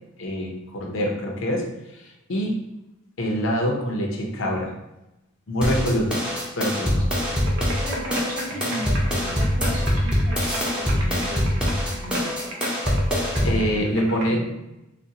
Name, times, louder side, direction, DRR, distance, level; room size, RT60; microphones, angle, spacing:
voice 1, 0.2-1.7 2.3-2.6 3.2-4.7 5.5-6.2 6.6-7.1 13.4-14.5, equal, 70° left, 1 dB, 0.6 m, -25 dB
sound 1, 5.6-13.6, equal, 5° right, 0.6 m, -24 dB
voice 2, 6.4-6.7 7.1-12.6 13.4-13.9 14.3-14.5, right 1 dB, 45° right, -4 dB, 1.0 m, -37 dB
sound 2, 7.1-14.3, right 1 dB, 75° right, 0.7 m, -35 dB
4.1 x 2.1 x 2.6 m, 0.94 s
head